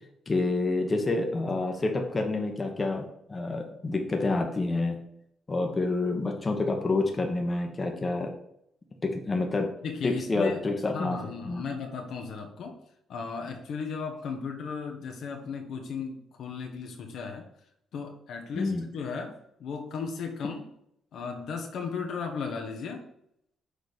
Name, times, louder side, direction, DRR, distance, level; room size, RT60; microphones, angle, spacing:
voice 1, 0.3-5.0 5.5-8.3 9.0-9.7 10.0-11.2 11.4-11.6 18.5-18.9, left 3 dB, 25° left, 3 dB, 1.1 m, -28 dB
voice 2, 9.8-10.6 10.9-12.7 13.1-17.4 17.9-20.6 21.1-23.1, left 5 dB, 70° left, 3 dB, 1.1 m, -35 dB
6.5 x 4.0 x 5.0 m, 0.75 s
cardioid pair, 90°, 0 cm